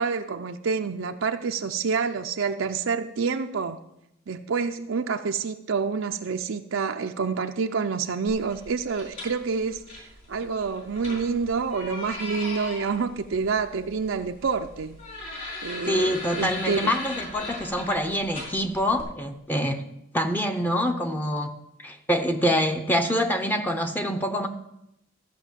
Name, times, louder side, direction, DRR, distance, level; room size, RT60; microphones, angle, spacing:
voice 1, 0.0-3.8 4.3-15.0 15.6-16.9, right 5 dB, 75° right, 6 dB, 0.5 m, -28 dB
sound 1, 8.3-19.0, left 2 dB, 45° left, 4.6 m, -39 dB
voice 2, 15.9-19.8 20.1-21.5 21.8-24.5, equal, 10° left, 5 dB, 0.7 m, -25 dB
14.0 x 6.0 x 7.3 m, 0.84 s
head